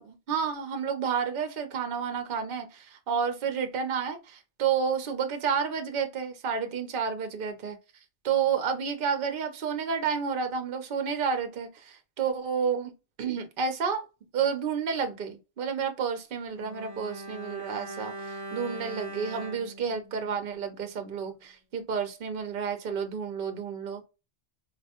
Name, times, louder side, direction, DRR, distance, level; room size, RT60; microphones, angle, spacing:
voice 1, 0.0-7.8 8.2-12.9 13.2-14.1 14.3-24.0, right 6 dB, 55° right, 0.8 m, -30 dB
Bowed string instrument, 16.5-21.0 21.3-21.4, right 1 dB, 20° right, 0.5 m, -41 dB
4.1 x 2.1 x 2.8 m
omnidirectional pair, 1.2 m